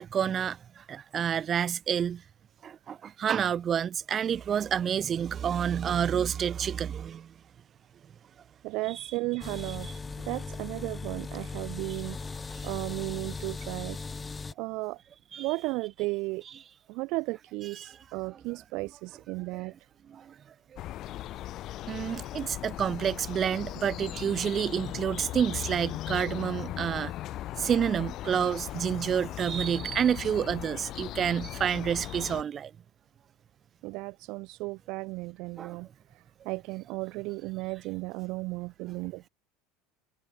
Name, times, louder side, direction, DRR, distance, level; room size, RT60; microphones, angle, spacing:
voice 1, 0.0-2.2 2.6-7.3 12.5-12.6 15.3-15.5 17.8-17.9 20.1-20.3 21.9-27.1 27.6-32.7 35.6-35.8, right 8 dB, 30° right, 0.8 m, -29 dB
voice 2, 8.6-9.9 10.2-12.3 12.6-14.0 14.6-15.0 15.4-16.4 16.9-19.7 33.8-35.9 36.4-39.3, right 23 dB, 55° right, 0.6 m, -34 dB
sound 1, 9.4-14.5, left 4 dB, 15° left, 0.5 m, -38 dB
sound 2, 20.8-32.4, left 14 dB, 45° left, 1.2 m, -38 dB
supercardioid pair, 145°, 0 cm